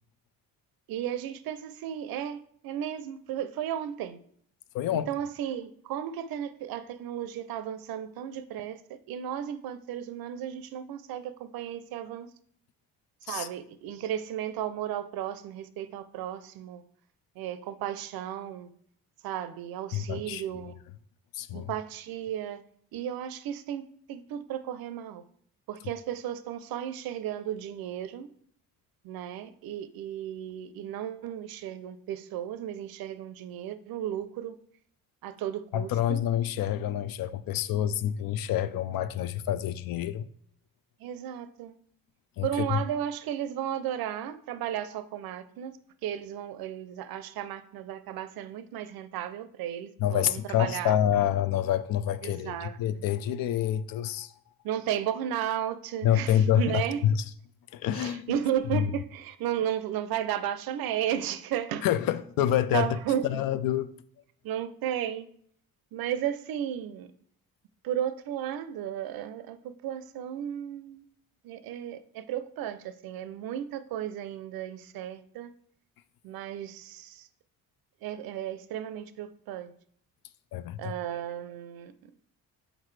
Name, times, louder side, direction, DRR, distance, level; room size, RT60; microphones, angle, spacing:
voice 1, 0.9-4.2 5.1-8.8 9.1-12.3 13.2-16.8 17.4-18.7 19.2-20.8 21.5-22.6 22.9-25.2 25.7-28.3 29.0-34.6 35.2-36.2 41.0-41.7 42.4-45.7 46.0-50.9 52.2-52.8 54.6-57.0 57.9-61.9 62.4-63.4 64.4-65.3 65.9-67.1 67.8-71.0 71.4-75.5 76.2-77.3 78.0-79.7 80.8-81.9, right 10 dB, 75° right, 0.6 m, -34 dB
voice 2, 4.7-5.1 13.3-13.5 19.9-20.4 21.3-21.7 35.7-40.2 42.4-42.8 50.0-54.3 56.0-57.2 57.7-58.3 58.7-58.9 61.8-63.9 80.5-80.9, left 10 dB, 65° left, 0.5 m, -27 dB
5.9 x 5.0 x 3.2 m
cardioid pair, 125°, 36 cm